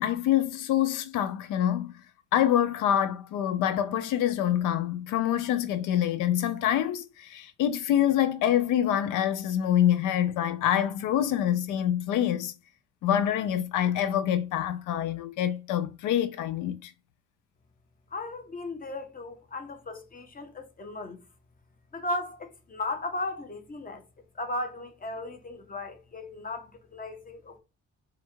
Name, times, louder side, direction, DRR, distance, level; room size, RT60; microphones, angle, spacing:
voice 1, 0.0-1.9 2.3-12.5 13.0-16.9, left 11 dB, 90° left, 0.5 m, -26 dB
voice 2, 18.1-21.2 21.9-24.0 24.4-27.6, left 2 dB, 30° left, 1.1 m, -36 dB
4.3 x 2.5 x 4.4 m
cardioid pair, 90°, 30 cm